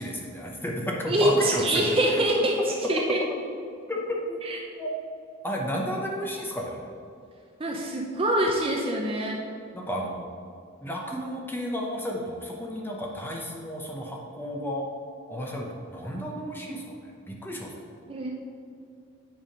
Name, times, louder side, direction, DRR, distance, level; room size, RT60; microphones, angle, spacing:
voice 1, 0.0-2.5 2.8-3.2 3.9-4.4 4.8-5.0 5.4-6.9 9.7-10.3 10.8-14.8 15.3-17.7, equal, 10° left, -1 dB, 0.7 m, -32 dB
voice 2, 1.1-2.5 2.9-3.2 4.5-4.6 7.6-9.4 18.1-18.3, right 1 dB, 25° right, 0 dB, 0.5 m, -24 dB
8.8 x 3.6 x 5.1 m, 2.3 s
head